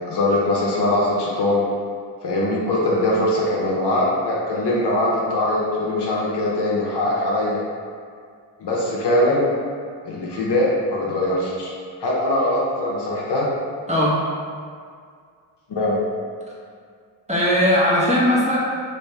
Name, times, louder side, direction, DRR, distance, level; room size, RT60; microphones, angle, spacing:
voice 1, 0.1-1.6 2.2-7.6 8.6-9.5 10.0-11.7 12.0-13.5 15.7-16.0, left 1 dB, 55° left, -5 dB, 0.9 m, -21 dB
voice 2, 13.9-14.2 17.3-18.6, equal, 15° right, -8 dB, 1.3 m, -18 dB
3.2 x 2.7 x 3.3 m, 2.1 s
supercardioid pair, 45°, 49 cm